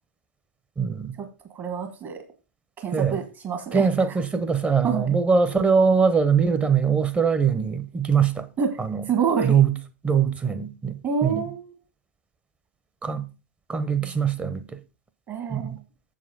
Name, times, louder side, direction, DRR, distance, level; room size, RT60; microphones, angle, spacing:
voice 1, 0.8-1.2 2.9-3.2 3.7-8.5 8.8-9.0 9.4-9.7 10.0-11.4 13.0-13.2 13.7-14.6 15.5-15.8, right 6 dB, 15° right, 0.9 m, -22 dB
voice 2, 1.5-2.2 2.8-3.9 4.8-5.1 8.6-8.8 9.1-9.5 11.0-11.8 14.0-14.2 15.3-15.8, right 6 dB, 35° right, 1.6 m, -27 dB
7.5 x 7.2 x 4.2 m
figure-of-eight pair, 100°, 8 cm